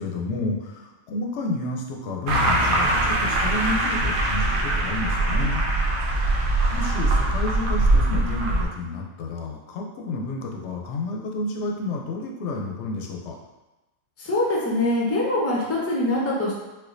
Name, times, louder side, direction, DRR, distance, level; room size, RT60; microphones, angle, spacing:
voice 1, 0.0-5.6 6.4-13.4, left 2 dB, 65° left, 1 dB, 0.8 m, -30 dB
sound 1, 2.3-8.6, right 2 dB, 85° right, 1.0 m, -22 dB
voice 2, 14.2-16.6, left 1 dB, 20° left, -4 dB, 0.3 m, -23 dB
4.4 x 2.2 x 2.5 m, 1.1 s
omnidirectional pair, 1.4 m